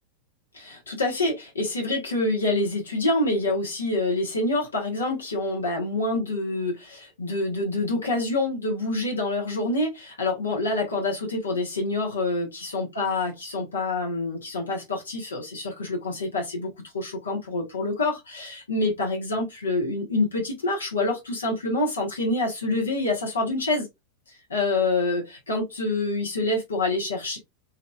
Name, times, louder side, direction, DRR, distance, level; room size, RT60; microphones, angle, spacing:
voice 1, 0.5-23.9 24.3-27.4, left 2 dB, 75° left, 1.1 m, -27 dB
2.9 x 2.8 x 2.3 m
figure-of-eight pair, 90°, 0 cm